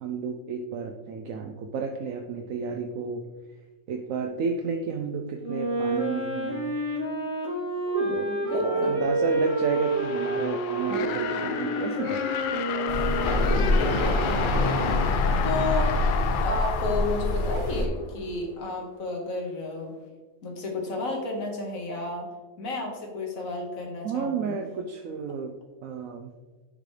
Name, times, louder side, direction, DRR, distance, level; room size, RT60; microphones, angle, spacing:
voice 1, 0.0-3.2 3.9-6.7 8.1-12.3 24.0-25.5 25.8-26.3, right 5 dB, 65° right, 4 dB, 0.9 m, -32 dB
Wind instrument woodwind instrument, 5.4-13.8, right 1 dB, 45° right, 2.9 m, -29 dB
voice 2, 7.9-9.0 13.4-14.8 15.4-15.9 16.4-19.9 20.4-22.3 22.6-24.6, left 2 dB, 60° left, 0 dB, 1.9 m, -32 dB
sound 1, 9.3-18.2, left 8 dB, 90° left, 1.2 m, -32 dB
sound 2, 12.9-17.9, left 2 dB, 40° left, 0.8 m, -25 dB
10.0 x 5.2 x 3.3 m, 1.3 s
omnidirectional pair, 1.7 m